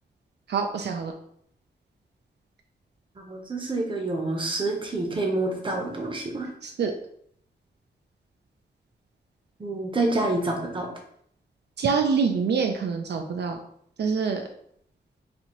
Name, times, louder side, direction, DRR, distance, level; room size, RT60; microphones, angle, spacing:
voice 1, 0.5-1.1 6.6-6.9 11.8-13.6 14.0-14.5, right 5 dB, 75° right, 4 dB, 0.4 m, -25 dB
voice 2, 3.3-6.5 9.6-10.9, right 2 dB, 30° right, 1 dB, 0.7 m, -27 dB
4.2 x 2.7 x 2.9 m, 0.67 s
wide cardioid pair, 155°, 18 cm